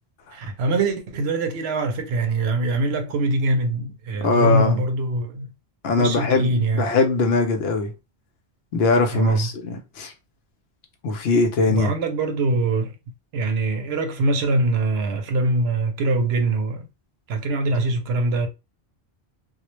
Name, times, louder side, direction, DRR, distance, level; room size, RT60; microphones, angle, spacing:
voice 1, 0.3-5.5 6.0-6.9 9.1-9.5 11.7-12.9 13.3-16.9 17.3-18.5, right 2 dB, 70° right, 0.8 m, -23 dB
voice 2, 4.2-4.8 5.8-7.9 8.7-10.1 11.0-11.9, left 3 dB, 70° left, 0.8 m, -21 dB
2.2 x 2.0 x 3.0 m
omnidirectional pair, 1.1 m